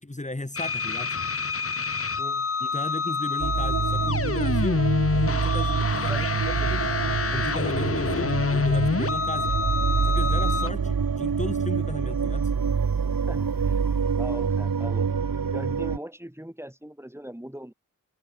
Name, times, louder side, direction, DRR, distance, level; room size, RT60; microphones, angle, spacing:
voice 1, 0.0-1.2 2.6-4.8 5.3-6.9 7.3-9.5 10.0-12.5, left 2 dB, 20° left, 4.2 m, -35 dB
sound 1, 0.5-10.7, left 5 dB, 40° left, 1.0 m, -27 dB
voice 2, 2.2-2.5 6.1-6.7 13.3-13.8 14.1-15.1 15.5-17.7, equal, 5° right, 6.5 m, -39 dB
sound 2, 3.4-16.0, right 6 dB, 80° right, 2.9 m, -26 dB
wide cardioid pair, 95°, 34 cm